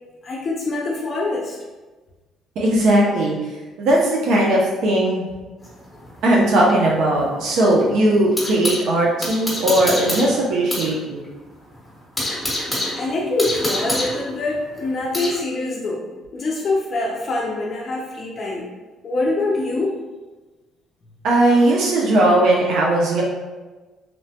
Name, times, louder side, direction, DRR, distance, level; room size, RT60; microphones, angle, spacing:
voice 1, 0.2-1.6 12.9-16.0 16.3-18.7 19.0-20.0, left 2 dB, 40° left, -2 dB, 0.4 m, -24 dB
voice 2, 2.6-3.4 3.8-5.2 6.2-11.2 21.2-23.2, right 1 dB, 70° right, -3 dB, 0.4 m, -18 dB
sound 1, 5.6-8.9 9.2-10.9 11.2-11.3 11.7-15.4, left 1 dB, 5° left, 0.9 m, -27 dB
3.0 x 2.1 x 2.7 m, 1.2 s
cardioid pair, 120°, 0 cm